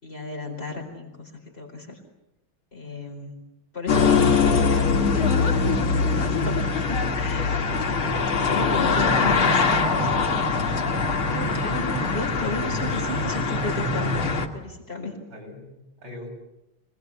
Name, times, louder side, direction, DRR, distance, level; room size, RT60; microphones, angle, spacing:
voice 1, 0.0-2.0 2.7-3.3 3.7-5.5 6.0-7.6 8.5-9.5 11.3-15.2, left 3 dB, 30° left, -1 dB, 5.0 m, -33 dB
sound 1, 3.9-14.5, left 4 dB, 85° left, 3.0 m, -22 dB
voice 2, 4.4-4.8 8.8-10.4 12.8-13.1 15.3-16.3, left 1 dB, 65° right, -1 dB, 8.2 m, -40 dB
26.0 x 20.5 x 8.5 m, 0.91 s
omnidirectional pair, 2.2 m